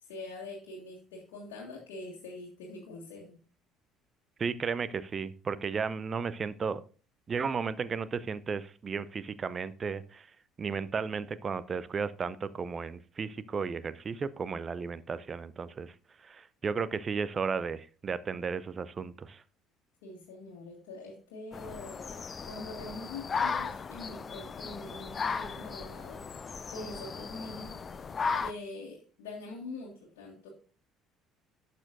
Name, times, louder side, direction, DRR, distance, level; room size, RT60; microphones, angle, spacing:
voice 1, 0.0-3.4 20.0-26.2 26.7-27.8 28.0-30.5, left 2 dB, 65° left, -3 dB, 1.7 m, -44 dB
voice 2, 4.4-6.8 7.3-10.3 10.6-15.9 16.2-19.4, right 5 dB, 30° right, 17 dB, 0.5 m, -34 dB
sound 1, 21.5-28.5, left 5 dB, 30° left, 0.5 m, -36 dB
11.5 x 6.8 x 2.5 m, 0.38 s
figure-of-eight pair, 55°, 0 cm